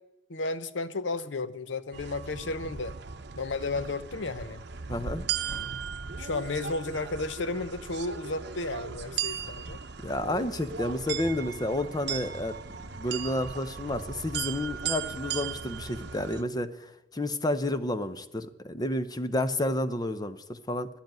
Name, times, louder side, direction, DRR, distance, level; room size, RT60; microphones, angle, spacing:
voice 1, 0.3-2.9 3.4-4.6 6.2-9.8, left 3 dB, 70° left, 13 dB, 0.7 m, -33 dB
sound 1, 1.9-16.4, right 7 dB, 60° right, 0.9 m, -37 dB
voice 2, 4.9-5.3 10.0-12.5 12.9-20.9, left 1 dB, 20° left, 10 dB, 0.7 m, -30 dB
12.0 x 7.9 x 9.2 m, 0.95 s
head